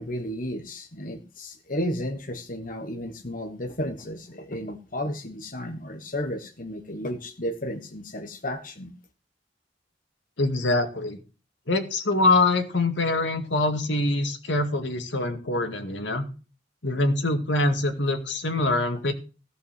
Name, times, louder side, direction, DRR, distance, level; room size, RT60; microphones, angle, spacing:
voice 1, 0.0-8.9, equal, 45° left, 7 dB, 1.3 m, -33 dB
voice 2, 10.4-11.2 11.7-16.3 16.8-19.1, left 2 dB, 80° left, 7 dB, 2.2 m, -24 dB
16.0 x 5.6 x 7.6 m, 0.35 s
head